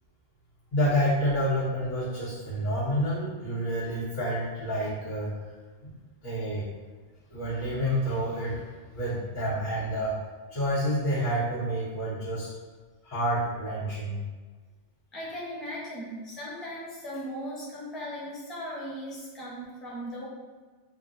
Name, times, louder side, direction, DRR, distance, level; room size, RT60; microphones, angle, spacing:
voice 1, 0.7-5.3 5.8-5.9 6.2-6.6 7.3-8.6 8.9-10.2 10.5-12.5 13.0-14.2, equal, 85° left, -14 dB, 1.8 m, -28 dB
voice 2, 15.1-20.3, equal, ahead, -6 dB, 0.7 m, -38 dB
5.7 x 2.4 x 2.5 m, 1.4 s
omnidirectional pair, 1.4 m